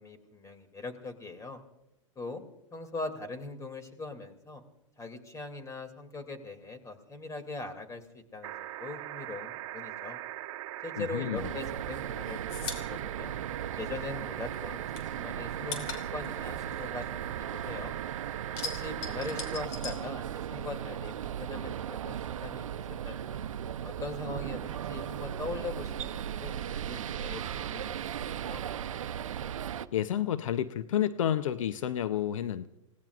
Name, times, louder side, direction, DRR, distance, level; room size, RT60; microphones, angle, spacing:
voice 1, 0.0-1.6 2.2-2.4 2.7-4.6 5.0-10.2 10.8-12.6 12.9-13.4 13.8-18.0 18.6-21.1 21.4-22.7 23.0-23.4 23.8-28.6, left 3 dB, 20° left, 7 dB, 2.6 m, -41 dB
sound 1, 8.4-19.7 21.1-21.2, right 14 dB, 55° right, 1.0 m, -41 dB
voice 2, 11.0-11.5 29.9-32.7, left 10 dB, 80° left, 12 dB, 0.7 m, -30 dB
sound 2, 11.3-29.9, right 9 dB, 80° right, 0.6 m, -37 dB
sound 3, 11.5-14.3 14.5-17.8 18.1-20.8 21.0-22.1, left 4 dB, 55° left, 3.3 m, -42 dB
29.5 x 18.0 x 2.5 m, 0.88 s
hypercardioid pair, 110°, 17 cm